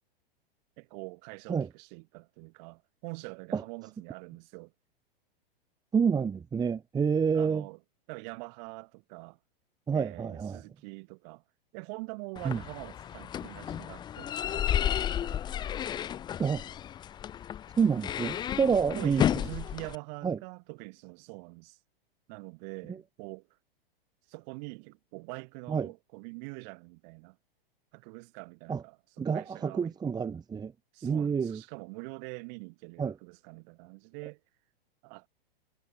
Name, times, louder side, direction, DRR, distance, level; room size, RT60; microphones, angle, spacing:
voice 1, 0.8-4.7 7.3-7.8 8.1-9.4 9.9-11.4 11.7-15.4 18.7-21.8 22.3-23.5 24.3-27.4 27.9-29.9 30.9-34.4 35.0-35.3, right 34 dB, 45° right, 5.6 m, -44 dB
voice 2, 5.9-7.6 9.9-10.6 12.4-12.6 16.4-16.6 17.8-19.2 20.2-20.4 22.9-23.0 25.7-25.9 28.7-28.8 29.2-30.7 31.0-31.6 33.0-33.2, right 6 dB, 15° right, 1.3 m, -28 dB
sound 1, 12.4-20.0, left 10 dB, 15° left, 0.5 m, -32 dB
hypercardioid pair, 125°, 29 cm